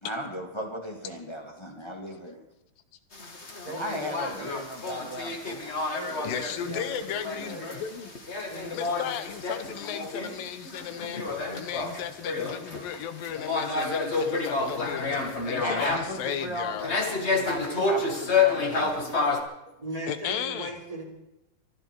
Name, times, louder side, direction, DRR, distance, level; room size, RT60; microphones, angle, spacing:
voice 1, 0.0-2.4 3.8-5.8 15.6-19.2, equal, 10° left, 1 dB, 1.3 m, -36 dB
sound 1, 3.1-19.4, left 4 dB, 55° left, 0.7 m, -30 dB
voice 2, 3.6-4.5 5.9-7.8 8.5-9.0 19.7-21.0, right 1 dB, 10° right, -2 dB, 3.3 m, -39 dB
voice 3, 6.2-8.1 8.7-11.2 11.5-16.9 20.1-20.7, left 9 dB, 80° left, 11 dB, 2.8 m, -35 dB
23.0 x 12.0 x 4.6 m, 0.88 s
omnidirectional pair, 4.0 m